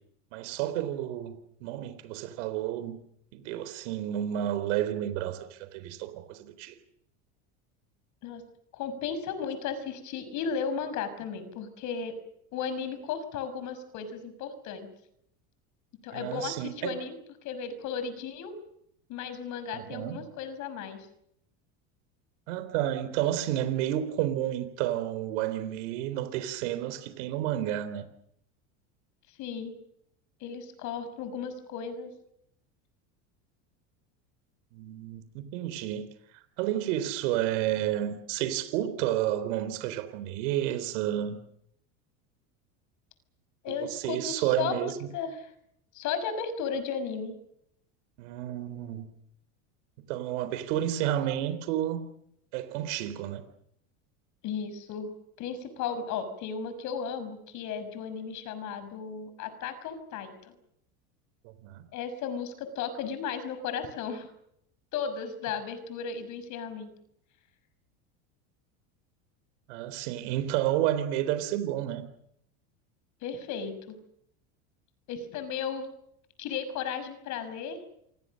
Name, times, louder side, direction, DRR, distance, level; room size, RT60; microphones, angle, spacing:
voice 1, 0.3-3.0 3.3-6.7 16.1-17.0 19.7-20.2 22.5-28.1 34.7-36.1 36.6-41.4 43.7-44.9 48.2-49.1 50.1-52.0 52.5-53.4 61.4-61.8 69.7-72.0, right 12 dB, 75° right, 3.9 m, -31 dB
voice 2, 8.7-12.2 12.5-14.9 16.0-17.2 17.4-18.5 19.1-21.1 29.4-29.8 30.4-32.1 43.6-45.5 45.9-47.4 54.4-55.1 55.4-60.3 61.9-64.3 64.9-66.9 73.2-73.9 75.1-75.9 76.4-77.8, left 6 dB, 50° left, 6.1 m, -35 dB
28.0 x 24.0 x 6.5 m
supercardioid pair, 130°, 37 cm